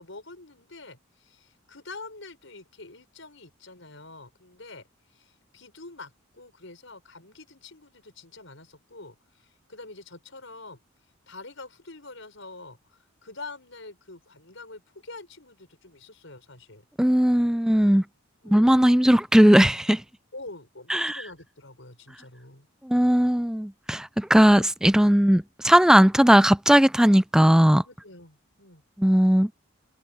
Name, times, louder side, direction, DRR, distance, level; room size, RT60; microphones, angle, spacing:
voice 1, 0.0-10.8 11.3-16.8 18.4-18.7 20.3-23.1 24.5-24.7 27.8-28.8, left 3 dB, 65° left, 6.5 m, -45 dB
voice 2, 17.0-18.0 18.5-20.0 20.9-21.2 22.8-27.8 29.0-29.5, equal, 5° right, 0.3 m, -18 dB
head